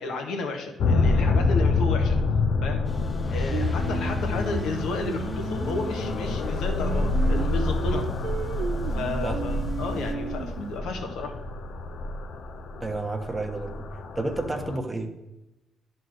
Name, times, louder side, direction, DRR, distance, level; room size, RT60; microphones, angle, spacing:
voice 1, 0.0-2.2 2.6-2.9 3.3-8.1 8.9-11.4, left 3 dB, 80° left, 3 dB, 1.5 m, -32 dB
sound 1, 0.8-14.8, left 3 dB, 65° left, 0.8 m, -27 dB
sound 2, 2.8-10.1, left 2 dB, 15° left, 0.7 m, -37 dB
Singing, 3.5-10.8, right 7 dB, 65° right, 0.6 m, -35 dB
voice 2, 12.8-13.8 14.1-15.2, right 2 dB, 15° right, 4 dB, 1.1 m, -30 dB
10.5 x 4.1 x 6.4 m, 1.0 s
cardioid pair, 90°, 0 cm